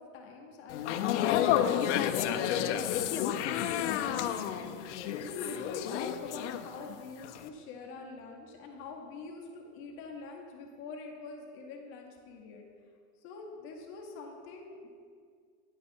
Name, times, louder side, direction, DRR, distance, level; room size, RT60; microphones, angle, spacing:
voice 1, 0.0-12.7 13.2-14.9, left 4 dB, 25° left, 0 dB, 0.9 m, -45 dB
sound 1, 0.7-6.9 7.2-7.5, left 10 dB, 50° left, 0.5 m, -30 dB
9.6 x 8.3 x 4.3 m, 2.1 s
supercardioid pair, 180°, 46 cm